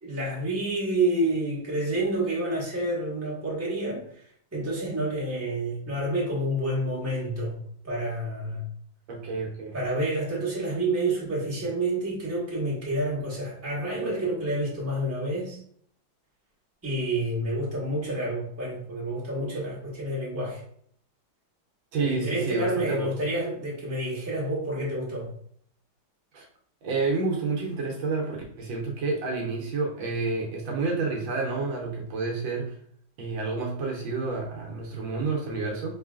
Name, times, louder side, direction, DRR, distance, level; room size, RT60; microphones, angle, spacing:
voice 1, 0.0-8.7 9.7-15.6 16.8-20.6 22.0-25.3, right 1 dB, 10° right, -6 dB, 1.2 m, -29 dB
voice 2, 9.1-9.7 21.9-23.1 26.3-26.5 26.8-32.7 33.2-36.0, right 4 dB, 75° right, -1 dB, 1.4 m, -29 dB
4.4 x 3.1 x 2.4 m, 0.63 s
omnidirectional pair, 2.2 m